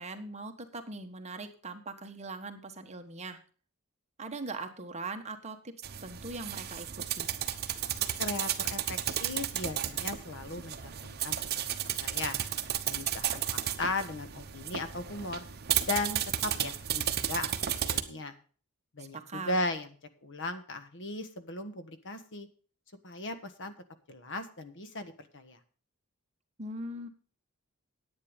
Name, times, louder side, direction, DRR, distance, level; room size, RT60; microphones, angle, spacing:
voice 1, 0.0-3.4 4.2-5.7 6.0-6.9 7.1-7.3 19.0-19.6 26.6-27.1, right 2 dB, 30° right, 6 dB, 1.3 m, -41 dB
sound 1, 5.8-18.0, right 10 dB, 45° right, 1.0 m, -33 dB
voice 2, 8.2-11.6 12.0-12.4 12.9-13.4 13.8-15.5 15.8-18.3 18.9-19.9 20.2-22.5 23.0-23.7 24.1-25.6, left 2 dB, 60° left, 10 dB, 1.3 m, -37 dB
10.5 x 9.0 x 5.2 m, 0.40 s
head